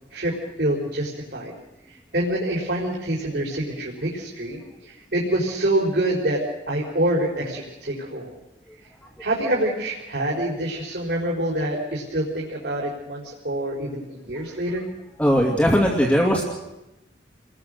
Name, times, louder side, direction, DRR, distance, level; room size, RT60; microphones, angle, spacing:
voice 1, 0.1-1.5 1.9-8.3 9.2-14.8, right 1 dB, 65° right, -3 dB, 4.5 m, -26 dB
voice 2, 15.2-16.4, equal, 10° left, 0 dB, 2.3 m, -19 dB
29.5 x 20.5 x 6.5 m, 0.95 s
head